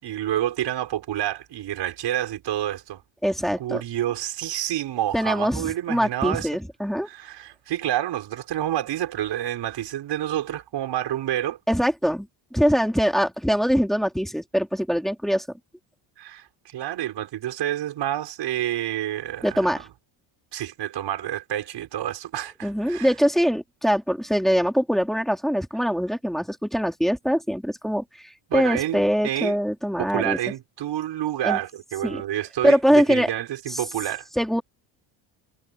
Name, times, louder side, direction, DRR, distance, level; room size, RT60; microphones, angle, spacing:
voice 1, 0.0-3.0 3.6-6.5 7.1-11.6 16.2-19.8 20.5-23.1 28.5-29.6 30.0-34.3, right 12 dB, 55° right, 6.2 m, -28 dB
voice 2, 3.2-3.8 5.1-7.1 11.7-15.5 19.4-19.8 22.6-28.0 28.5-30.4 31.4-31.6 32.0-32.2 32.6-33.3 33.7-33.8 34.4-34.6, equal, ahead, 3.4 m, -23 dB
cardioid pair, 155°, 50 cm